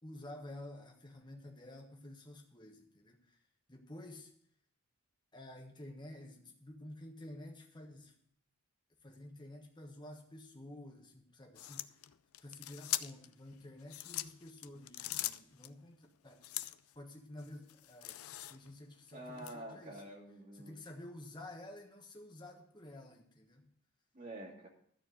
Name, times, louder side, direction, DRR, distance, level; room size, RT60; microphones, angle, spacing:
voice 1, 0.0-3.4 3.7-4.3 5.3-8.1 9.0-12.0 12.4-16.6 16.9-20.0 20.5-23.6, left 1 dB, 20° left, 2 dB, 1.3 m, -51 dB
sound 1, 11.6-13.3 13.8-15.7 16.4-16.9 17.4-18.8 19.4-19.5, left 15 dB, 80° left, 0.4 m, -41 dB
voice 2, 19.1-20.8 24.1-24.7, right 1 dB, 40° right, -2 dB, 2.5 m, -47 dB
12.5 x 4.5 x 7.9 m, 0.65 s
head